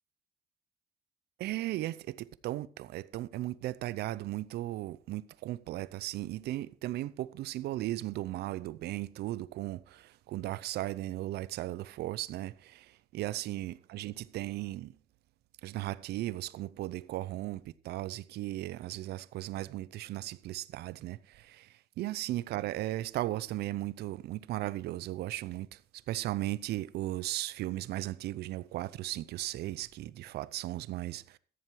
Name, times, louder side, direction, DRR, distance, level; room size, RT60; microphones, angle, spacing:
voice 1, 1.4-14.9 15.6-21.7 22.0-25.8 26.1-31.4, right 15 dB, 75° right, 0.7 m, -36 dB
14.5 x 9.2 x 4.7 m
cardioid pair, 110°, 17 cm